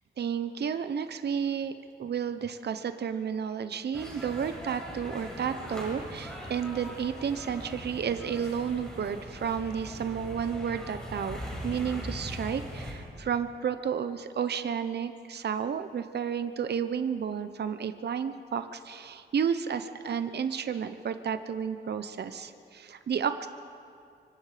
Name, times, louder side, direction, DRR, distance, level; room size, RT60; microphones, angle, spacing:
voice 1, 0.2-1.7 2.0-11.4 11.6-23.5, right 7 dB, 65° right, 10 dB, 0.8 m, -32 dB
sound 1, 3.9-12.9, equal, 5° left, 7.2 m, -40 dB
24.5 x 24.0 x 5.1 m, 2.4 s
wide cardioid pair, 110°, 19 cm